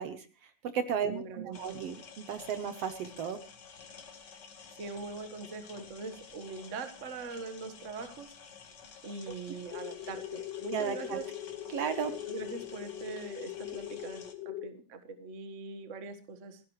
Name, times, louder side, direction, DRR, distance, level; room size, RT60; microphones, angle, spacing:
voice 1, 0.0-3.4 10.7-11.2 11.7-12.1, right 7 dB, 65° right, 10 dB, 1.8 m, -34 dB
voice 2, 1.1-1.9 4.8-8.3 9.0-11.3 12.2-16.6, right 4 dB, 40° right, 9 dB, 1.1 m, -42 dB
sound 1, 1.5-14.4, left 6 dB, 45° left, 1.7 m, -52 dB
sound 2, 9.7-14.7, left 13 dB, 65° left, 1.8 m, -41 dB
29.5 x 10.5 x 3.2 m, 0.33 s
omnidirectional pair, 3.4 m